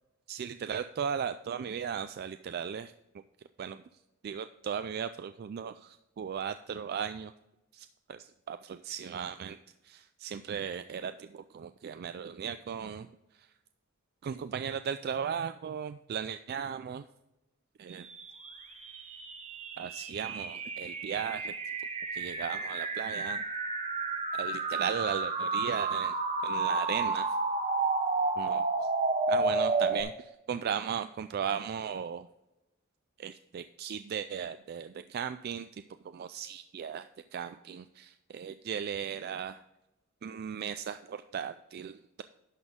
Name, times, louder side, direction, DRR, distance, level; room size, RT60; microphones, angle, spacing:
voice 1, 0.3-2.9 3.6-3.8 4.2-7.3 7.7-9.6 9.8-13.1 13.3-13.5 14.2-17.1 17.8-18.1 19.8-21.5 22.1-23.4 24.3-27.4 28.4-28.6 29.3-32.3 33.2-39.6 40.2-42.2, right 7 dB, 45° right, 11 dB, 0.3 m, -37 dB
sound 1, 18.1-30.0, right 3 dB, 30° right, 0.9 m, -31 dB
11.0 x 6.1 x 3.6 m, 0.93 s
head